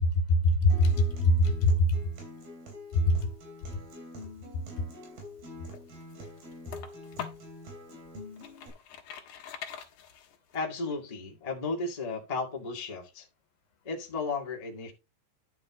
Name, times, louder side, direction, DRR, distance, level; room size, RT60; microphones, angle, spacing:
voice 1, 0.0-1.9 2.9-3.2, left 1 dB, 85° left, 3.4 m, -23 dB
Acoustic guitar, 0.7-8.7, left 1 dB, 65° right, 5.0 m, -46 dB
sound 1, 5.4-7.5 8.1-10.6, left 8 dB, 60° left, 2.4 m, -43 dB
voice 2, 10.5-13.3 13.8-14.9, left 3 dB, 20° left, 1.0 m, -34 dB
11.0 x 6.4 x 3.7 m
omnidirectional pair, 4.5 m